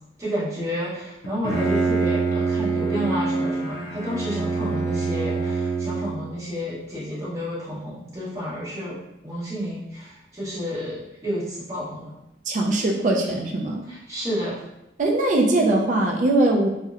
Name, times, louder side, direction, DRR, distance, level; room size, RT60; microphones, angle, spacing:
voice 1, 0.2-9.0 9.2-12.1 13.9-14.6, equal, 15° right, -9 dB, 0.8 m, -30 dB
Bowed string instrument, 1.2-6.3, right 4 dB, 85° left, 0.5 m, -25 dB
voice 2, 12.5-13.9 15.0-16.7, right 2 dB, 40° right, 1 dB, 0.3 m, -21 dB
2.8 x 2.0 x 2.4 m, 0.88 s
head